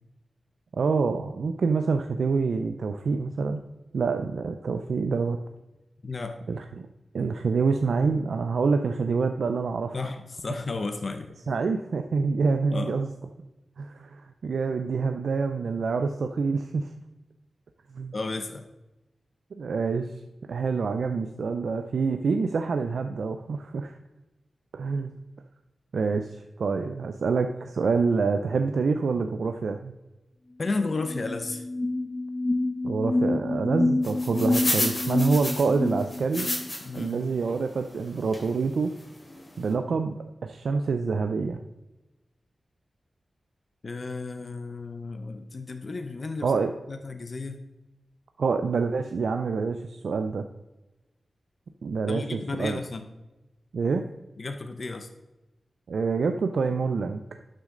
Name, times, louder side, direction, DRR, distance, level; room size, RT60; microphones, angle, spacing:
voice 1, 0.7-3.6 3.9-5.4 6.5-6.6 7.1-10.0 11.5-13.1 13.8-16.9 17.9-18.1 19.6-20.1 20.5-24.0 24.7-25.1 25.9-29.9 32.8-36.5 36.9-38.9 39.6-40.2 40.4-41.6 46.4-46.7 48.4-50.4 51.8-52.8 53.7-54.1 55.9-57.2, right 4 dB, 75° right, 6 dB, 0.5 m, -26 dB
voice 2, 6.0-6.4 9.9-11.3 12.7-13.0 18.1-18.7 30.6-31.7 36.8-37.2 43.8-46.5 46.9-47.6 52.1-53.1 54.4-55.1, left 3 dB, 50° left, 6 dB, 0.8 m, -33 dB
sound 1, 30.6-30.7 31.0-36.7, left 2 dB, 15° left, 0.8 m, -28 dB
sound 2, 34.0-37.0 37.5-37.6 38.3-38.5 39.0-39.1 39.3-39.5, left 1 dB, 30° left, 2.9 m, -30 dB
11.5 x 6.4 x 3.9 m, 1.0 s
wide cardioid pair, 80°, 0 cm